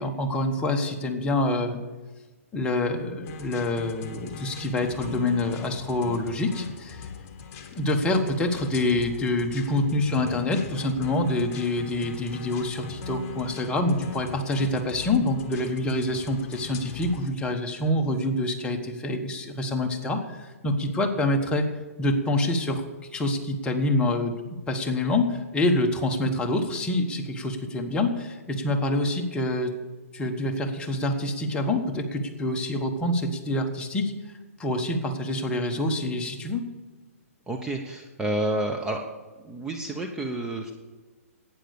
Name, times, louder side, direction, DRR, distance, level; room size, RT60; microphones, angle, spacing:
voice 1, 0.0-1.8 2.5-7.0 7.7-21.7 22.0-22.8 23.1-24.3 24.7-29.7 30.1-34.1 34.6-36.7, left 1 dB, 10° left, 3 dB, 1.3 m, -26 dB
sound 1, 3.2-17.3, left 5 dB, 35° left, 1.5 m, -40 dB
voice 2, 37.5-39.0 39.4-40.7, right 1 dB, 10° right, 2 dB, 0.9 m, -29 dB
11.5 x 9.2 x 6.8 m, 1.2 s
hypercardioid pair, 135°, 8 cm